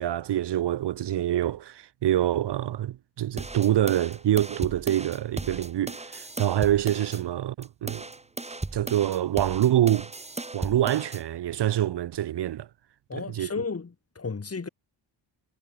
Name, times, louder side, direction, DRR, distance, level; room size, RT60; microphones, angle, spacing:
voice 1, 0.0-8.1 8.7-10.1 10.5-12.7 13.1-13.5, right 12 dB, 60° right, 0.7 m, -26 dB
sound 1, 3.4-7.2 7.6-11.2, right 2 dB, 15° right, 1.5 m, -37 dB
voice 2, 13.1-14.7, left 4 dB, 30° left, 2.4 m, -33 dB
cardioid pair, 80°, 47 cm